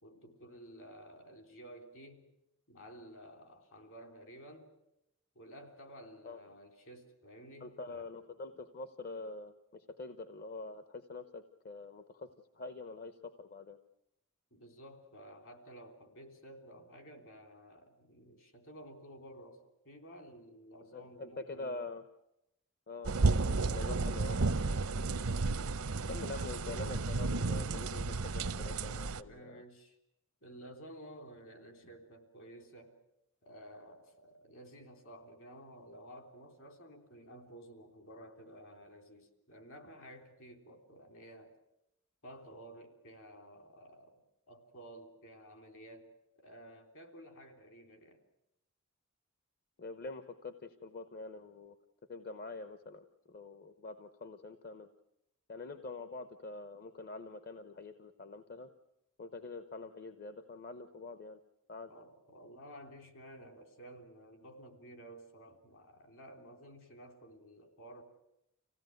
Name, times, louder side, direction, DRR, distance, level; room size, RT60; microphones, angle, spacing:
voice 1, 0.0-2.3 2.7-4.7 5.4-8.0 14.5-21.8 23.4-23.9 29.2-30.0 30.4-32.9 33.4-41.5 42.2-44.2 44.5-48.2 61.9-68.0, right 1 dB, 65° left, 6 dB, 3.6 m, -53 dB
voice 2, 7.6-12.3 12.5-13.8 20.9-22.1 22.9-23.4 23.7-24.4 26.0-29.6 49.8-51.8 52.1-54.9 55.5-58.7 59.2-61.4 61.7-61.9, left 3 dB, 45° left, 10 dB, 0.9 m, -45 dB
sound 1, 23.0-29.2, right 3 dB, 75° right, 0.8 m, -32 dB
26.0 x 16.5 x 9.3 m, 0.87 s
head